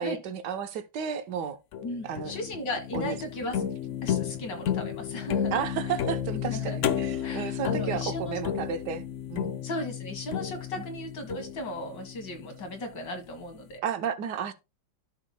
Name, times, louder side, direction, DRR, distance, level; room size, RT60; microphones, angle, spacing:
voice 1, 0.0-1.6 2.0-2.3 2.9-3.2 3.6-3.7 5.5-9.0 9.3-9.5 10.8-10.9 13.8-14.5, right 7 dB, 65° right, 1.4 m, -32 dB
sound 1, 1.7-12.9, left 9 dB, 85° left, 0.6 m, -32 dB
voice 2, 1.8-3.6 4.0-5.5 6.3-6.8 7.2-8.4 9.6-13.8, left 1 dB, 65° left, 2.3 m, -36 dB
12.5 x 5.8 x 2.2 m
omnidirectional pair, 2.0 m